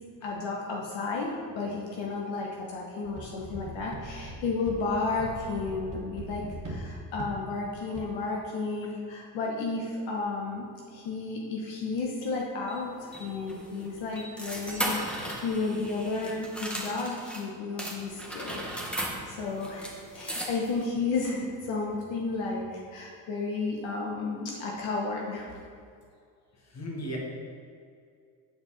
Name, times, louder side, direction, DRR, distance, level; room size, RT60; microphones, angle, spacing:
voice 1, 0.2-10.6 10.9-18.6 18.9-25.6, left 3 dB, 65° left, -2 dB, 1.3 m, -32 dB
sound 1, 3.0-8.0, right 1 dB, 40° right, 1.5 m, -41 dB
sound 2, 12.7-17.4 17.8-20.9, right 1 dB, ahead, 1.5 m, -37 dB
voice 2, 26.6-27.2, equal, 30° left, -1 dB, 1.8 m, -35 dB
8.2 x 4.4 x 4.3 m, 2.3 s
hypercardioid pair, 75°, 49 cm